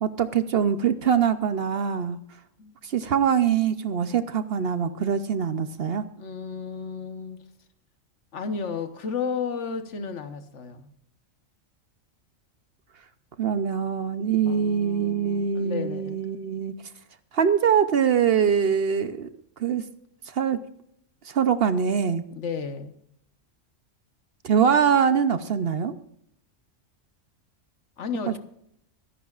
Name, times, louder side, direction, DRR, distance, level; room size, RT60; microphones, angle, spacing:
voice 1, 0.0-2.2 2.8-6.0 13.4-16.7 17.3-19.3 19.6-19.8 20.3-20.6 21.2-22.3 24.4-25.9 28.3-28.4, right 7 dB, 55° right, 0.8 m, -23 dB
voice 2, 6.2-7.4 8.3-10.9 14.4-16.2 22.3-23.0 28.0-28.4, left 6 dB, 65° left, 1.3 m, -33 dB
24.0 x 11.0 x 2.4 m
omnidirectional pair, 1.3 m